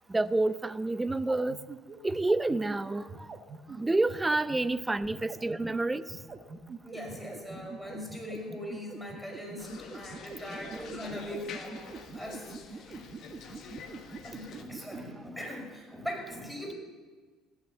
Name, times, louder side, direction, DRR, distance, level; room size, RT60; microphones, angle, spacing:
voice 1, 0.1-1.6 2.0-3.3 3.7-6.0 10.6-11.2 14.8-15.2, right 2 dB, 15° right, 16 dB, 0.6 m, -29 dB
sound 1, 1.1-15.0, right 4 dB, 35° right, 1.7 m, -43 dB
voice 2, 6.8-13.9 14.2-16.7, left 1 dB, ahead, 0 dB, 5.6 m, -41 dB
sound 2, 9.6-14.6, left 6 dB, 55° left, 1.6 m, -47 dB
17.0 x 10.5 x 6.9 m, 1.4 s
figure-of-eight pair, 60°, 0 cm